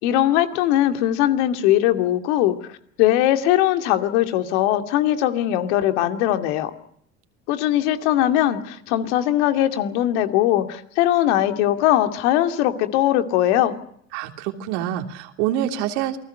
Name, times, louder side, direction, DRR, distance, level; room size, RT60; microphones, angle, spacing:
voice 1, 0.0-2.6 3.0-6.7 7.5-13.8, left 12 dB, 75° left, 7 dB, 2.6 m, -20 dB
voice 2, 14.1-16.2, right 11 dB, 75° right, 5 dB, 3.2 m, -26 dB
28.0 x 19.5 x 6.7 m, 0.68 s
hypercardioid pair, 80°, 35 cm